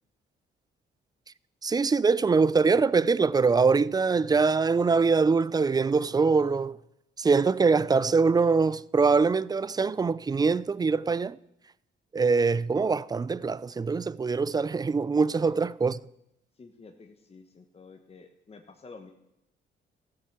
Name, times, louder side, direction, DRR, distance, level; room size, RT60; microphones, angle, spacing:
voice 1, 1.6-6.8 7.2-11.4 12.1-16.0, right 4 dB, 20° right, 0.4 m, -23 dB
voice 2, 16.6-19.1, left 4 dB, 30° left, 1.2 m, -50 dB
14.0 x 7.8 x 7.3 m
cardioid pair, 90°, 20 cm